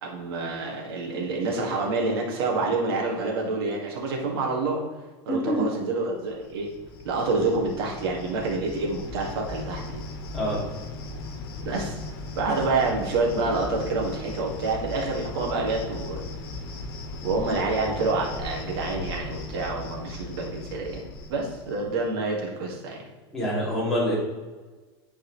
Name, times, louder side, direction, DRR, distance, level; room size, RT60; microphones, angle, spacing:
voice 1, 0.0-4.8 5.3-6.7 7.0-10.0 11.6-12.0 12.4-16.2 17.2-21.0 21.3-23.0, right 3 dB, 80° right, -1 dB, 2.2 m, -27 dB
voice 2, 5.3-5.7 10.3-10.6 12.4-12.5 23.3-24.2, equal, ahead, -8 dB, 2.5 m, -26 dB
Cricket, 6.3-22.0, left 2 dB, 75° left, 1.4 m, -37 dB
11.5 x 4.7 x 3.2 m, 1.3 s
supercardioid pair, 160°, 13 cm